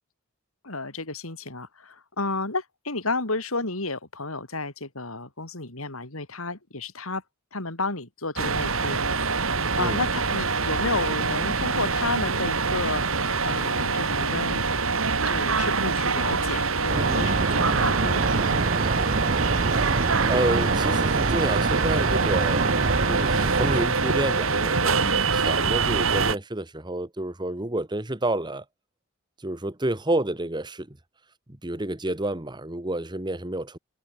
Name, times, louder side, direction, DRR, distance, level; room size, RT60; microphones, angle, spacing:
voice 1, 0.6-7.2 7.5-14.6 15.3-18.6, left 3 dB, 70° left, 4.3 m, -32 dB
sound 1, 8.4-26.4, right 4 dB, 65° right, 2.8 m, -25 dB
sound 2, 16.9-23.9, right 4 dB, 40° right, 0.6 m, -26 dB
voice 2, 20.3-22.8 23.1-28.6 29.4-31.0 31.5-33.8, right 1 dB, 20° right, 1.4 m, -29 dB
head